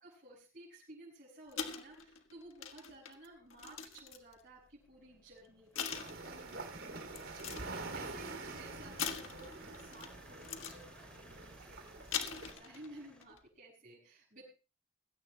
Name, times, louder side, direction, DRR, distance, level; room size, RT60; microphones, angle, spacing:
voice 1, 0.0-7.7 7.9-14.5, right 1 dB, 45° right, -5 dB, 6.5 m, -55 dB
sound 1, 1.5-4.4 5.2-5.3 5.8-6.6 7.1-7.8 9.0-10.1 10.4-10.8 11.9-12.9 13.2-13.4, left 7 dB, 85° left, 1.5 m, -41 dB
sound 2, 4.2-13.2, equal, 5° left, 3.1 m, -62 dB
sound 3, 5.9-12.5, right 3 dB, 75° right, 3.0 m, -46 dB
20.0 x 16.5 x 2.2 m, 0.33 s
head